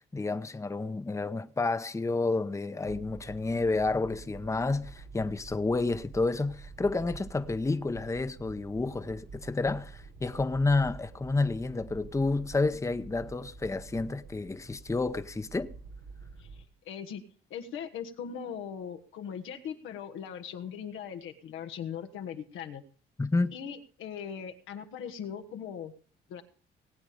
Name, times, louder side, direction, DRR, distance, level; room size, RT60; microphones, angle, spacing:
voice 1, 0.0-15.7 23.2-23.5, left 3 dB, 15° left, 0.8 m, -30 dB
sound 1, 2.8-16.7, right 4 dB, 90° right, 1.7 m, -48 dB
voice 2, 16.4-17.2 17.5-22.8 23.5-25.9 26.3-26.4, left 8 dB, 90° left, 1.4 m, -40 dB
19.0 x 8.8 x 5.1 m
cardioid pair, 90°, 20 cm